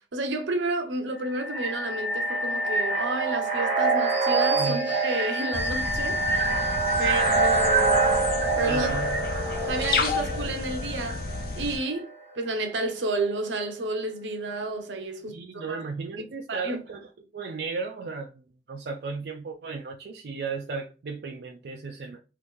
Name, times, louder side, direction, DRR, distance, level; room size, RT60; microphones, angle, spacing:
voice 1, 0.1-6.6 7.0-8.2 8.6-8.9 9.7-11.2 11.6-15.8 16.5-16.8, right 2 dB, 85° right, 0.7 m, -31 dB
sound 1, 1.2-12.0, right 3 dB, 30° right, 1.4 m, -26 dB
sound 2, 5.5-11.8, left 4 dB, 50° left, 0.5 m, -32 dB
voice 2, 8.7-9.2 15.3-17.1 17.3-18.4 18.7-22.2, right 4 dB, 60° right, 0.4 m, -35 dB
3.0 x 2.6 x 3.5 m
head